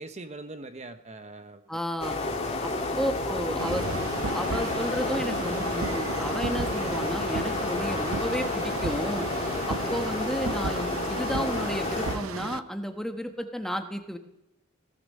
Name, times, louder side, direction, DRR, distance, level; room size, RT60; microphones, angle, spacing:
voice 1, 0.0-1.6 2.2-2.7 3.6-3.8, right 2 dB, 35° right, 8 dB, 0.9 m, -42 dB
voice 2, 1.7-2.2 2.6-2.7 3.0-3.8 4.3-9.2 9.7-14.2, equal, ahead, 5 dB, 1.2 m, -32 dB
sound 1, 2.0-12.2, left 2 dB, 30° left, 2.3 m, -30 dB
sound 2, 3.6-9.5 9.8-9.9, equal, 60° right, 6.0 m, -47 dB
sound 3, 3.6-12.6, right 5 dB, 85° right, 0.6 m, -35 dB
17.0 x 13.0 x 6.6 m, 0.83 s
head